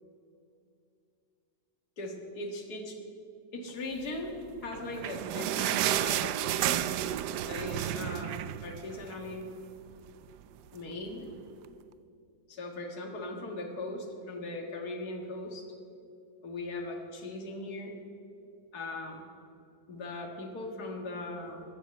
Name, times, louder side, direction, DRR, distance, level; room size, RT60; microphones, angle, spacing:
voice 1, 2.0-2.9 3.5-4.4 4.6-6.9 7.5-9.5 10.7-11.3 12.5-15.6 16.4-18.0 18.7-19.2 19.9-21.6, left 2 dB, 65° left, 2 dB, 2.3 m, -39 dB
sound 1, 4.6-9.3 9.7-9.8 10.1-10.2 10.9-11.0, right 12 dB, 80° right, 1.2 m, -31 dB
14.0 x 11.0 x 8.0 m, 2.5 s
omnidirectional pair, 1.8 m